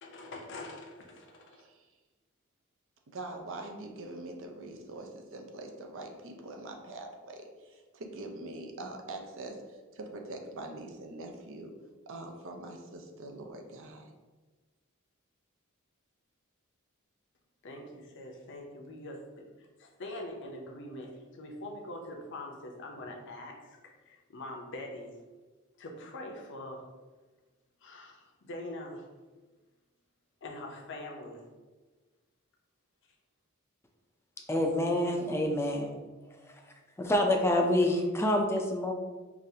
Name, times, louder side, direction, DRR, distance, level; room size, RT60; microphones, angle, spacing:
voice 1, 0.0-1.6 17.6-25.2 25.8-26.8 27.8-29.0 30.4-31.5, left 1 dB, 60° left, 1 dB, 0.7 m, -43 dB
voice 2, 1.5-1.9 3.1-11.7 12.1-14.1, right 2 dB, 65° right, 3 dB, 0.5 m, -43 dB
voice 3, 34.5-36.0 36.5-36.6 37.0-38.9, left 1 dB, 10° left, 2 dB, 0.4 m, -27 dB
4.9 x 2.5 x 2.7 m, 1.3 s
head